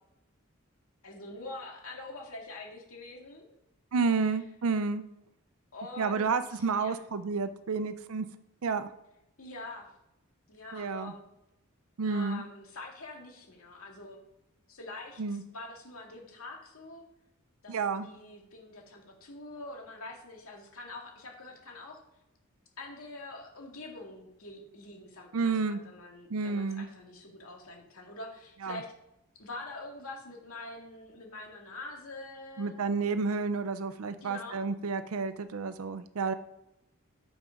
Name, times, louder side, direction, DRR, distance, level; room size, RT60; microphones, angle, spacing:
voice 1, 1.0-3.5 4.3-4.4 5.7-7.0 9.4-9.9 10.5-11.2 12.0-14.2 14.7-17.0 17.6-22.0 22.8-28.9 29.4-32.8 34.2-34.6, left 2 dB, 75° left, 0 dB, 2.2 m, -45 dB
voice 2, 3.9-5.0 6.0-8.3 8.6-8.9 10.7-11.1 12.0-12.4 15.2-15.4 17.7-18.1 25.3-25.8 26.3-26.9 28.6-28.8 32.6-36.3, right 4 dB, 75° right, 11 dB, 0.5 m, -30 dB
7.0 x 6.0 x 5.2 m, 0.87 s
head